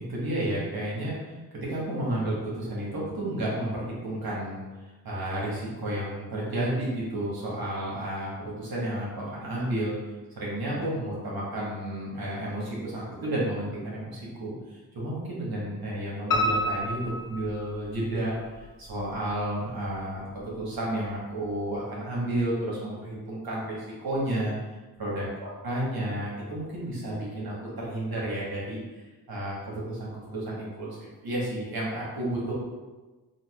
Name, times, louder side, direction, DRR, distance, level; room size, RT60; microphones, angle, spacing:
voice 1, 0.1-1.3 1.6-4.6 5.0-10.0 10.3-14.5 14.9-24.5 25.0-32.5, right 1 dB, 70° right, -5 dB, 1.2 m, -31 dB
Piano, 16.3-18.2 18.6-19.5 19.8-19.9 20.4-20.5 20.7-20.8, left 1 dB, 60° left, 0.6 m, -29 dB
3.9 x 2.3 x 2.3 m, 1.2 s
cardioid pair, 55°, 37 cm